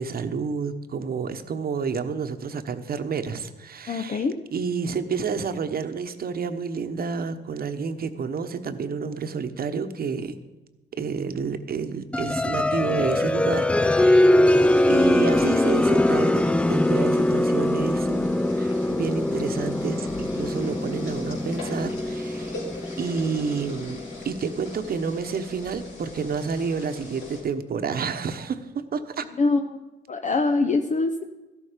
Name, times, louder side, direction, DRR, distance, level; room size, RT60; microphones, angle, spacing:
voice 1, 0.0-4.3 4.5-10.3 10.9-14.5 14.9-22.6 23.0-29.2, right 5 dB, 50° right, 9 dB, 1.1 m, -30 dB
voice 2, 3.9-4.4 29.4-29.8 30.1-31.2, left 3 dB, 40° left, 7 dB, 0.7 m, -23 dB
sound 1, 12.1-24.6, left 1 dB, 5° left, 0.3 m, -22 dB
sound 2, 14.4-27.4, left 3 dB, 80° left, 4.8 m, -41 dB
13.0 x 12.0 x 5.1 m, 1.1 s
cardioid pair, 90°, 20 cm